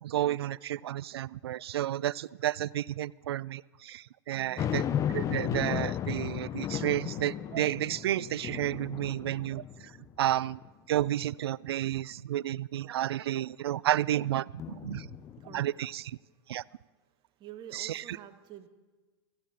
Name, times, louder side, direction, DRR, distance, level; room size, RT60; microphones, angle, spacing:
voice 1, 0.0-4.8 5.1-9.9 10.2-10.6 10.9-15.1 15.5-16.1 16.5-16.6 17.7-18.2, right 13 dB, 65° right, 23 dB, 0.4 m, -31 dB
voice 2, 4.3-4.7 15.2-15.7 16.3-16.4 17.4-18.7, right 10 dB, 35° right, 7 dB, 1.6 m, -48 dB
sound 1, 4.6-10.1 10.6-10.7 14.6-15.7, left 10 dB, 25° left, 0.6 m, -34 dB
16.0 x 14.5 x 4.4 m, 1.3 s
hypercardioid pair, 105°, 14 cm